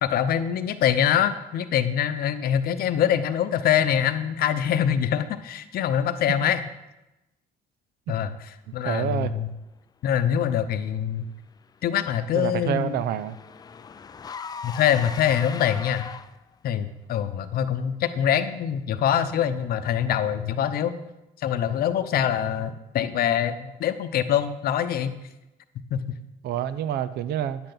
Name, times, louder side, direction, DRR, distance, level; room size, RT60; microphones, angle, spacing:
voice 1, 0.0-6.7 8.1-8.3 8.7-9.5 10.0-11.3 11.8-13.0 14.6-16.1 16.6-21.0 21.4-25.1 25.9-26.0, left 9 dB, 65° left, 10 dB, 0.7 m, -24 dB
voice 2, 8.8-9.3 12.3-13.4 26.4-27.6, right 10 dB, 70° right, 13 dB, 0.6 m, -27 dB
Car / Engine, 11.6-16.6, left 6 dB, 25° left, 0.3 m, -40 dB
10.5 x 8.9 x 4.0 m, 0.96 s
cardioid pair, 110°, 17 cm